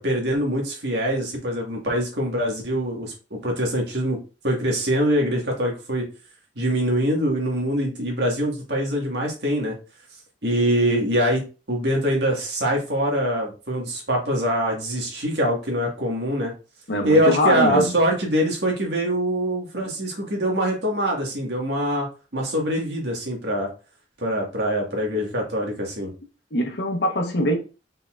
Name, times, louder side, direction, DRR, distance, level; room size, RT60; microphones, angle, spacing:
voice 1, 0.0-4.2 4.4-6.1 6.5-9.7 10.4-11.4 11.7-16.5 17.0-22.1 22.3-23.7 24.2-26.1, equal, 70° right, 1.7 m, -23 dB
voice 2, 16.9-17.9 26.5-27.6, equal, 70° left, 1.1 m, -22 dB
5.3 x 3.9 x 2.4 m
head